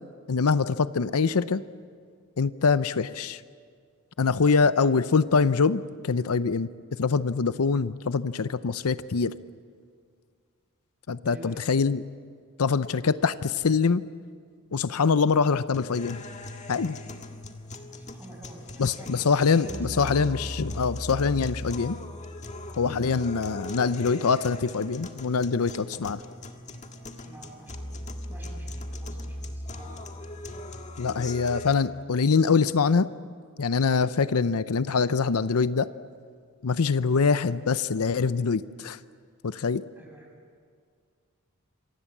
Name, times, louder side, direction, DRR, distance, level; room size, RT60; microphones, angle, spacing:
voice 1, 0.3-1.6 2.4-3.4 4.2-6.7 7.0-9.3 11.1-12.0 12.6-14.0 14.7-16.2 16.7-17.0 18.8-22.0 22.8-26.2 31.0-33.1 33.6-35.9 36.6-39.0 39.4-39.8, left 5 dB, 80° left, 14 dB, 0.6 m, -24 dB
voice 2, 4.5-4.9 11.2-11.6 18.0-19.3 19.6-20.2 27.2-27.9 28.3-30.0 39.9-40.3, right 1 dB, 10° right, -1 dB, 7.2 m, -47 dB
sound 1, 15.7-31.7, left 1 dB, 30° left, 1.7 m, -39 dB
27.5 x 24.5 x 7.3 m, 2.1 s
head